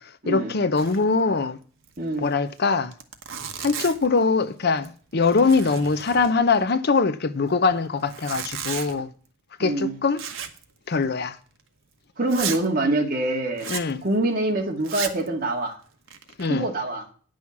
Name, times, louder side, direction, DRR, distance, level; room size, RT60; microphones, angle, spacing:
voice 1, 0.3-1.6 2.2-2.9 3.6-9.1 9.6-10.2 10.9-11.4 13.7-14.0 16.4-16.7, left 4 dB, 55° left, 0.7 m, -22 dB
Zipper (clothing), 0.8-1.1 1.4-1.5 1.8-2.0 2.6-2.7 2.9-4.2 4.7-5.0 5.2-6.6 8.0-9.0 10.2-10.6 10.9-11.1 11.6-11.7 12.3-12.6 13.6-13.9 14.8-15.3 15.9-16.5, right 8 dB, 75° right, 1.2 m, -34 dB
voice 2, 2.0-2.3 9.6-10.0 12.2-13.7 14.0-15.8 16.5-17.0, right 2 dB, 45° right, 2.2 m, -25 dB
9.7 x 6.3 x 7.2 m
head